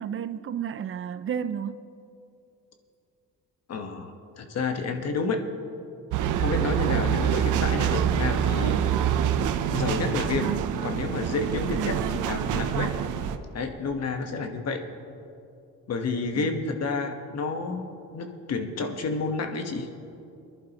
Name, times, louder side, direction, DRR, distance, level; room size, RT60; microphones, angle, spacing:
voice 1, 0.0-1.8 11.7-12.0 16.3-16.7, right 8 dB, 45° right, 0.5 m, -32 dB
voice 2, 3.7-5.4 6.4-8.9 9.7-10.5 10.8-12.0 12.3-12.9 13.5-14.9 15.9-17.9 18.1-19.9, left 4 dB, 55° left, 1.2 m, -30 dB
sound 1, 6.1-13.4, right 9 dB, 85° right, 0.7 m, -26 dB
22.0 x 11.0 x 2.9 m
cardioid pair, 90°, 30 cm